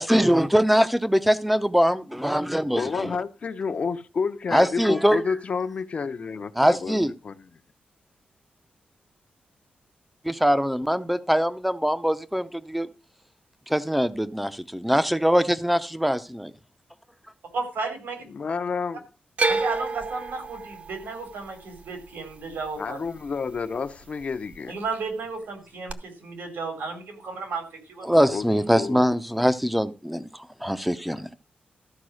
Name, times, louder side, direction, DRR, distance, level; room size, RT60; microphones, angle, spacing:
voice 1, 0.0-3.1 4.5-5.2 6.6-7.1 10.2-12.9 13.7-16.5 28.0-30.3 30.6-31.3, equal, ahead, 0.7 m, -22 dB
voice 2, 2.7-7.5 18.3-19.1 22.8-24.7 28.3-28.5 28.8-29.1, left 5 dB, 40° left, 0.8 m, -30 dB
voice 3, 17.5-18.3 19.5-23.0 24.7-28.6, right 4 dB, 90° right, 4.5 m, -34 dB
sound 1, 19.4-23.6 23.9-24.6 25.9-26.0, right 3 dB, 45° right, 0.9 m, -30 dB
14.0 x 5.3 x 6.4 m
wide cardioid pair, 175°, 3 cm